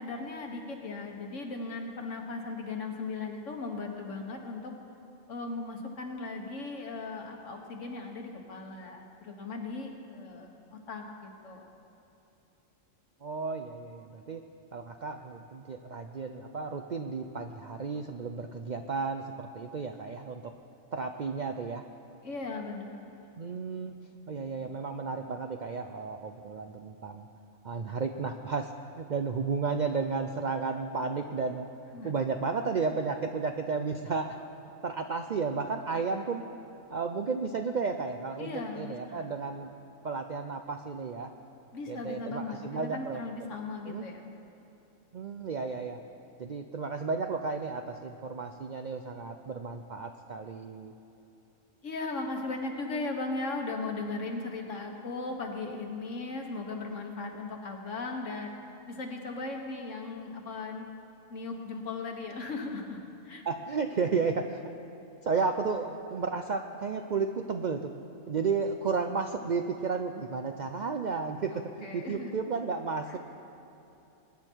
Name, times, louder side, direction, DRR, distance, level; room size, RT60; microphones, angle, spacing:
voice 1, 0.0-4.7 5.3-11.7 22.2-23.2 31.9-32.1 38.4-39.3 41.7-44.3 51.8-58.5 58.9-60.9 61.3-63.4 71.5-72.3, left 3 dB, 65° left, 2 dB, 1.7 m, -37 dB
voice 2, 13.2-14.4 14.7-20.5 20.9-21.8 23.4-23.9 24.3-27.3 27.6-28.7 29.0-31.7 32.0-34.4 34.8-36.4 36.9-39.7 40.0-41.3 41.9-43.5 43.9-44.1 45.1-46.0 46.4-50.9 63.4-64.7 65.2-67.9 68.3-73.2, right 4 dB, 55° right, 5 dB, 0.5 m, -33 dB
21.5 x 9.7 x 4.6 m, 3.0 s
omnidirectional pair, 1.4 m